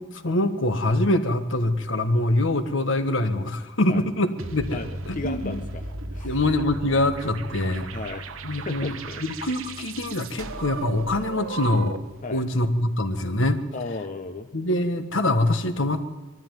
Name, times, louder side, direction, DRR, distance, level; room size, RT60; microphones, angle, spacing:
voice 1, 0.0-4.8 5.1-5.6 6.2-7.9 8.4-9.0 9.2-12.0 12.3-13.6 14.5-16.2, left 1 dB, 65° left, 8 dB, 1.5 m, -24 dB
sound 1, 4.4-12.2, right 2 dB, 80° right, 1.1 m, -35 dB
voice 2, 4.7-6.4 7.9-9.2 12.2-12.4 13.7-14.5, left 3 dB, 40° left, 5 dB, 0.9 m, -35 dB
22.0 x 14.0 x 9.2 m, 1.2 s
head